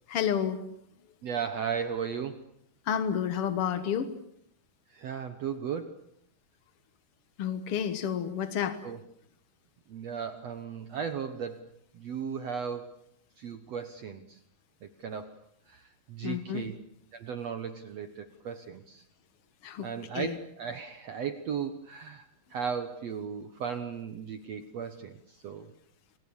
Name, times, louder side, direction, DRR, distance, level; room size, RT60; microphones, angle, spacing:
voice 1, 0.1-0.6 2.8-4.1 7.4-8.8 16.2-16.7 19.6-19.9 20.1-20.4, left 8 dB, 65° left, 10 dB, 1.4 m, -30 dB
voice 2, 1.2-2.4 4.9-6.0 8.8-9.0 9.9-13.0 13.4-14.4 14.8-15.4 15.7-16.8 17.1-19.0 19.8-25.7, right 7 dB, 70° right, 9 dB, 1.5 m, -36 dB
28.5 x 25.0 x 7.2 m, 0.75 s
omnidirectional pair, 4.6 m